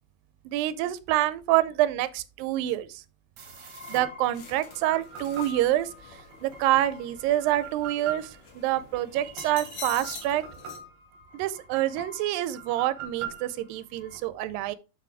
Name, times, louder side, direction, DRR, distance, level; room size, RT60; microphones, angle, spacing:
voice 1, 0.5-3.0 3.9-5.9 6.4-10.5 11.3-14.8, right 14 dB, 90° right, 2.3 m, -27 dB
sound 1, 3.4-14.2, right 4 dB, 65° right, 2.4 m, -43 dB
sound 2, 4.3-10.8, left 4 dB, 50° left, 1.9 m, -45 dB
6.3 x 6.1 x 3.3 m
omnidirectional pair, 3.9 m